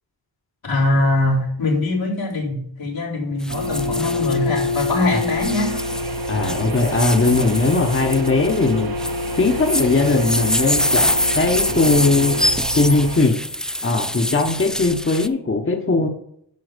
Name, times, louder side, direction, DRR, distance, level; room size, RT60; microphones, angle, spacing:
voice 1, 0.6-5.8, left 2 dB, 85° left, 3.8 m, -22 dB
sound 1, 3.4-15.3, equal, ahead, 0.3 m, -25 dB
sound 2, 3.5-13.2, left 1 dB, 50° right, 1.2 m, -27 dB
voice 2, 6.3-8.9 9.4-12.3 12.7-13.4 13.8-16.1, left 3 dB, 30° left, 1.2 m, -19 dB
11.0 x 5.7 x 5.2 m
wide cardioid pair, 75°, 45 cm